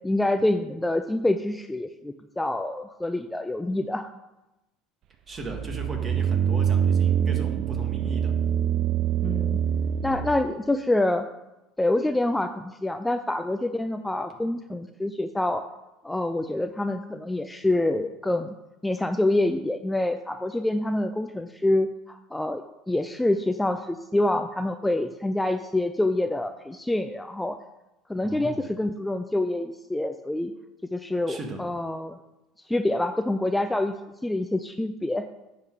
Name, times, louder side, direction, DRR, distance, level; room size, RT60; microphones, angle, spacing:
voice 1, 0.0-4.1 9.2-9.6 10.0-11.3 11.8-15.6 16.0-18.6 18.8-27.6 28.1-30.5 30.9-32.2 32.7-33.9 34.2-35.3, left 1 dB, 10° left, 8 dB, 0.4 m, -26 dB
voice 2, 5.3-8.3 28.2-28.6 31.3-31.6, right 1 dB, 30° right, 3 dB, 1.7 m, -37 dB
sound 1, 5.4-10.4, right 8 dB, 55° right, 0.4 m, -25 dB
9.6 x 3.8 x 6.3 m, 0.98 s
hypercardioid pair, 75°, 0 cm